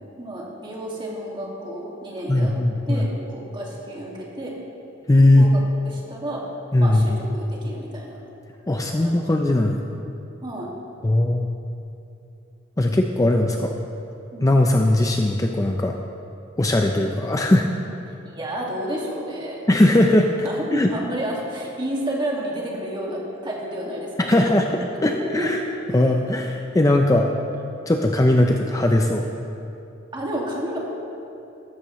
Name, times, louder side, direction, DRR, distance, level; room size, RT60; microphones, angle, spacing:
voice 1, 0.2-2.5 2.9-4.5 5.3-6.4 6.8-8.2 8.8-9.3 10.4-10.7 14.3-14.5 18.2-19.6 20.4-24.4 25.4-25.5 30.1-30.8, right 1 dB, 25° right, -3 dB, 2.0 m, -31 dB
voice 2, 2.3-3.1 5.1-5.5 6.7-7.2 8.7-9.8 11.0-11.5 12.8-13.7 14.4-16.0 16.6-17.7 19.7-20.9 24.2-25.6 25.9-27.3 27.9-29.3, left 1 dB, 15° left, 3 dB, 0.5 m, -19 dB
14.5 x 12.5 x 3.1 m, 2.8 s
head